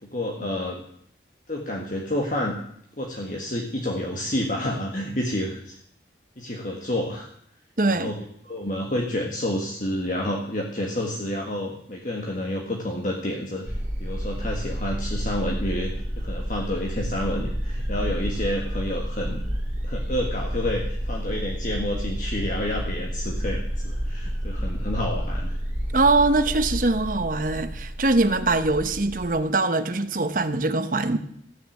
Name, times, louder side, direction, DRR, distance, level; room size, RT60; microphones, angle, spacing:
voice 1, 0.0-0.8 1.5-2.6 3.0-5.8 6.4-7.3 7.9-8.2 8.4-19.4 19.8-25.5, left 1 dB, 45° left, 1.6 m, -29 dB
voice 2, 7.8-8.1 25.9-31.2, right 2 dB, 45° right, 0.9 m, -22 dB
sound 1, 13.6-29.4, equal, 10° right, 2.9 m, -30 dB
14.5 x 6.8 x 8.5 m
head